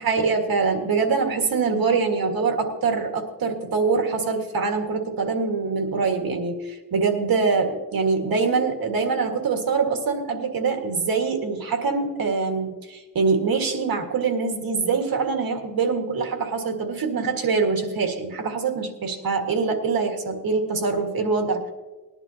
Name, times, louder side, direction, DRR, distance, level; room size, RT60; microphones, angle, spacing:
voice 1, 0.0-21.7, right 4 dB, 80° right, 3 dB, 1.8 m, -24 dB
20.0 x 11.0 x 2.8 m, 1.3 s
cardioid pair, 90°, 35 cm